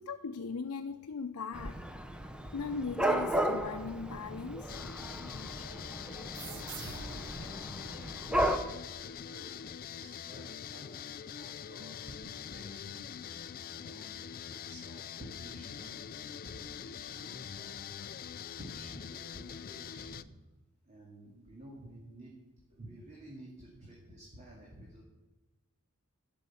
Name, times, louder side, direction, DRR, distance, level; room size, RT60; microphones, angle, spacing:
voice 1, 0.0-1.8 2.1-4.8 5.1-6.2, left 5 dB, 85° left, 6 dB, 0.6 m, -40 dB
Dog / Cat, 1.5-8.6, right 1 dB, 5° right, 0.6 m, -34 dB
sound 1, 4.7-20.2, left 8 dB, 40° left, 0.4 m, -44 dB
sound 2, 6.3-9.6, right 6 dB, 55° right, 0.6 m, -49 dB
voice 2, 6.5-7.4 8.2-13.1 13.7-20.3 20.8-22.3 22.7-25.0, right 1 dB, 30° right, -3 dB, 2.1 m, -52 dB
12.5 x 6.6 x 8.4 m, 1.1 s
head